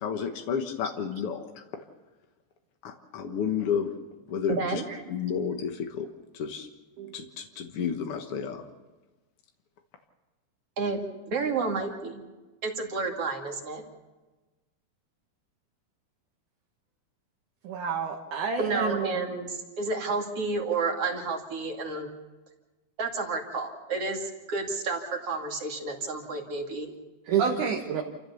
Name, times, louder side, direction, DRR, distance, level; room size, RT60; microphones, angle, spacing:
voice 1, 0.0-1.4 2.8-3.9 4.3-4.8 5.1-6.1 6.3-6.7 7.1-8.6, left 7 dB, 65° left, 4 dB, 1.4 m, -31 dB
voice 2, 4.5-4.8 10.8-11.0 11.3-12.2 12.6-13.8 18.6-22.1 23.0-26.9, right 3 dB, 40° right, 1 dB, 2.9 m, -30 dB
voice 3, 7.0-7.3 17.6-19.2 27.3-28.0, right 6 dB, 60° right, 1 dB, 2.6 m, -28 dB
29.0 x 15.0 x 7.0 m, 1.2 s
omnidirectional pair, 4.4 m